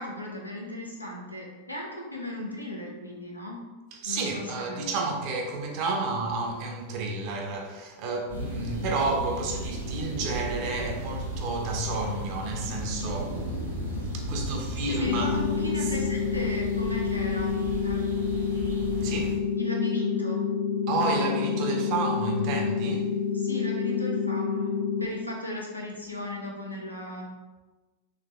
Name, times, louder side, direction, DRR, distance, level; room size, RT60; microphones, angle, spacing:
voice 1, 0.0-3.6 4.0-4.9 14.9-18.0 19.6-20.5 23.3-27.3, left 2 dB, 90° left, 0.8 m, -35 dB
voice 2, 3.9-13.5 14.1-15.4 15.8-16.0 19.0-19.5 20.9-23.2, right 3 dB, 45° right, 0.8 m, -31 dB
sound 1, 8.3-19.3, equal, 70° right, 1.4 m, -34 dB
sound 2, 15.0-25.1, left 6 dB, 50° left, 0.5 m, -28 dB
3.9 x 3.4 x 3.3 m
figure-of-eight pair, 90°, 0 cm